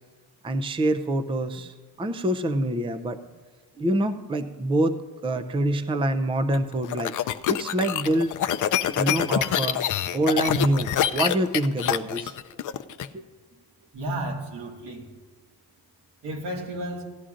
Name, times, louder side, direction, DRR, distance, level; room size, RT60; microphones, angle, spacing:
voice 1, 0.4-3.2 3.8-4.9 5.2-8.3 9.0-9.8 10.1-12.3 13.1-13.2, right 1 dB, 15° right, 10 dB, 0.5 m, -26 dB
sound 1, 6.5-13.1, left 10 dB, 50° left, 0.5 m, -26 dB
voice 2, 13.9-15.1 16.2-17.0, right 1 dB, 85° right, 0 dB, 1.9 m, -32 dB
17.0 x 11.0 x 2.5 m, 1.3 s
cardioid pair, 100°, 39 cm